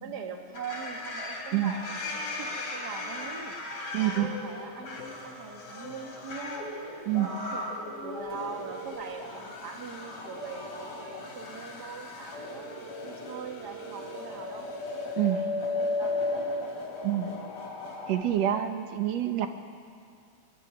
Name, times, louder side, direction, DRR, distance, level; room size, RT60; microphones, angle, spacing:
voice 1, 0.0-3.5 4.0-6.6 7.2-7.7 8.0-14.7 15.2-16.7, right 6 dB, 40° right, 2 dB, 2.0 m, -42 dB
sound 1, 0.5-18.2, left 2 dB, 60° left, 4.1 m, -36 dB
voice 2, 3.9-4.3 7.1-7.3 15.2-15.4 17.0-17.3 18.1-19.5, right 12 dB, 65° right, 7 dB, 1.9 m, -27 dB
22.5 x 12.5 x 9.7 m, 2.3 s
omnidirectional pair, 3.5 m